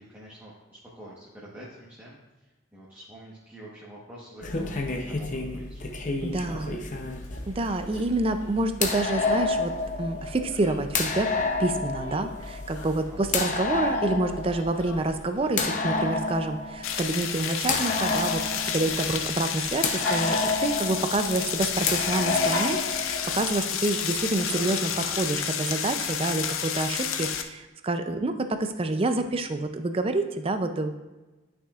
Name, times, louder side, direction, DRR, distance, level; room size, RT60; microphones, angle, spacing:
voice 1, 0.0-7.0 13.1-13.4, right 1 dB, 10° right, -7 dB, 1.2 m, -47 dB
sound 1, 4.4-23.6, left 3 dB, 40° left, 0.7 m, -30 dB
voice 2, 6.2-6.8 7.5-30.9, right 2 dB, 30° right, 8 dB, 0.5 m, -28 dB
Dog, 7.1-25.4, left 2 dB, 70° left, 1.5 m, -43 dB
sound 2, 16.8-27.4, left 8 dB, 85° left, 0.6 m, -30 dB
11.0 x 6.1 x 2.4 m, 1.1 s
head